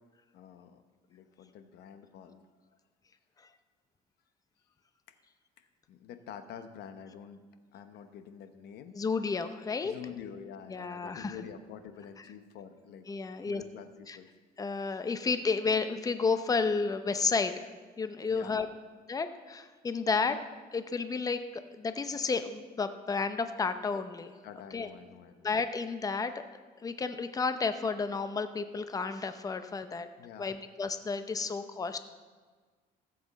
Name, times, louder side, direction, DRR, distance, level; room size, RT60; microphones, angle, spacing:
voice 1, 0.3-0.8 1.1-2.5 5.1-5.2 5.9-7.4 7.7-9.0 9.8-13.1 13.5-14.3 18.3-18.6 20.2-20.3 24.4-25.5 30.2-30.6, left 8 dB, 75° left, 9 dB, 0.9 m, -47 dB
voice 2, 8.9-9.9 10.7-11.3 13.1-13.6 14.1-14.2 14.6-17.7 18.0-18.7 19.1-20.4 20.7-24.3 24.7-24.9 25.4-26.3 26.8-30.1 30.4-32.0, left 4 dB, 20° left, 10 dB, 0.6 m, -31 dB
15.0 x 7.7 x 4.1 m, 1.4 s
cardioid pair, 110°, 17 cm